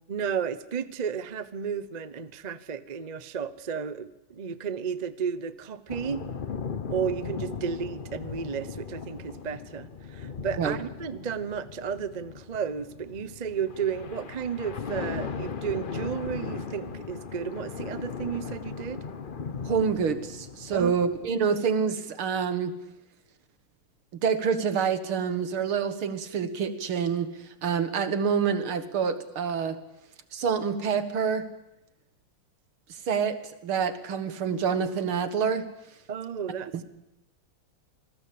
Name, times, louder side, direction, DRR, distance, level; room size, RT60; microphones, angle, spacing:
voice 1, 0.1-6.2 6.9-19.0 20.7-20.9 36.1-36.7, right 7 dB, 40° right, 14 dB, 0.6 m, -33 dB
sound 1, 5.9-21.3, left 5 dB, 45° left, 0.6 m, -38 dB
voice 2, 19.7-22.7 24.2-27.3 27.6-29.8 30.3-31.4 33.1-33.4 33.6-35.6 36.7-36.8, right 6 dB, 80° right, 11 dB, 2.5 m, -27 dB
27.0 x 20.0 x 8.6 m, 0.89 s
omnidirectional pair, 2.3 m